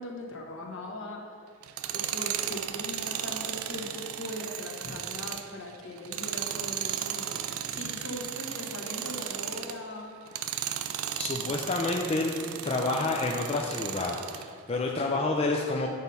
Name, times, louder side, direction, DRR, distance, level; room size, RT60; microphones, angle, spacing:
voice 1, 0.0-1.4 1.9-10.1, left 1 dB, 65° left, 0 dB, 1.1 m, -40 dB
Tools, 1.6-9.8 10.3-14.5, right 10 dB, 90° right, 0.4 m, -35 dB
voice 2, 11.2-15.9, left 2 dB, 30° left, 0 dB, 0.4 m, -29 dB
8.0 x 4.1 x 5.4 m, 2.2 s
head